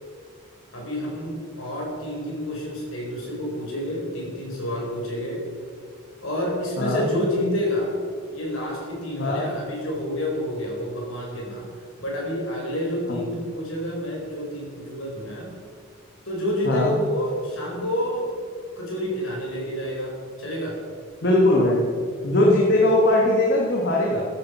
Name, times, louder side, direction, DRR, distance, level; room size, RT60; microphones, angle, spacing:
voice 1, 0.7-5.4 6.2-7.9 8.3-11.7 12.0-15.5 16.2-18.3 18.8-20.8, equal, 80° left, -2 dB, 4.3 m, -29 dB
voice 2, 21.2-21.8 22.2-24.3, left 1 dB, 55° left, -2 dB, 1.8 m, -20 dB
14.5 x 8.8 x 6.1 m, 2.1 s
head